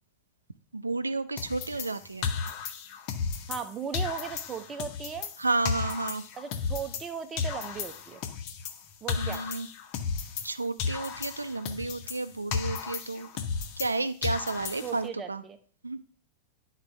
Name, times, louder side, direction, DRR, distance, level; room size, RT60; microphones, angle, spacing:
voice 1, 0.7-2.3 5.4-6.2 9.2-9.7 10.4-13.3 13.8-15.4 15.8-16.0, right 3 dB, 80° right, 12 dB, 0.4 m, -31 dB
sound 1, 1.4-3.7 3.9-7.1 7.4-10.5 10.8-13.9 14.2-15.1, left 6 dB, 45° left, 0.7 m, -34 dB
voice 2, 3.5-5.3 6.3-8.2 9.0-9.4 14.8-15.6, right 6 dB, 25° right, 9 dB, 0.7 m, -37 dB
10.5 x 4.0 x 3.4 m, 0.43 s
figure-of-eight pair, 90°, 0 cm